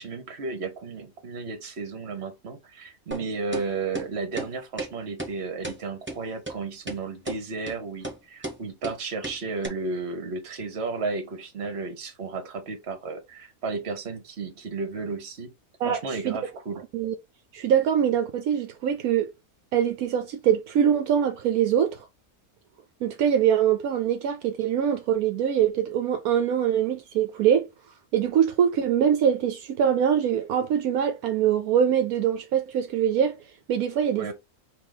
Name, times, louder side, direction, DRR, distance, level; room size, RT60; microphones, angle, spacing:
voice 1, 0.0-15.5 15.8-16.8 34.2-34.3, right 4 dB, 50° right, 1.3 m, -33 dB
sound 1, 3.1-3.2 3.5-3.7 4.0-4.1 4.4-4.5 4.8-4.9 5.2-5.3 5.6-5.8 6.1-6.2 6.5-6.6 6.9-7.0 7.3-7.4 7.7-7.8 8.0-8.2 8.4-8.6 8.8-9.0 9.2-9.4 9.6-9.7, right 2 dB, 10° right, 0.8 m, -33 dB
voice 2, 15.8-16.4 16.9-17.1 17.5-19.3 19.7-22.1 23.0-27.7 28.1-33.4 33.7-34.3, right 9 dB, 75° right, 1.1 m, -23 dB
4.8 x 2.8 x 3.8 m
omnidirectional pair, 1.6 m